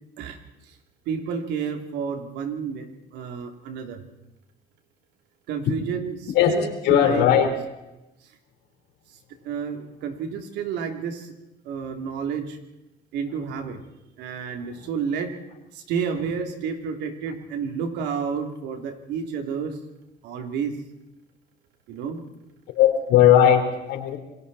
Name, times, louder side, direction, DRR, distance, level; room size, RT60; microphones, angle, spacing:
voice 1, 1.1-4.0 5.5-7.5 9.4-11.3 11.6-12.6 13.1-13.8 14.2-15.3 15.7-19.8 20.2-20.7 21.9-22.2, right 6 dB, 90° right, 5 dB, 3.2 m, -30 dB
voice 2, 6.8-7.5 14.8-14.9 22.7-24.2, left 10 dB, 90° left, 5 dB, 4.0 m, -18 dB
28.0 x 22.0 x 4.2 m, 0.94 s
cardioid pair, 110°, 17 cm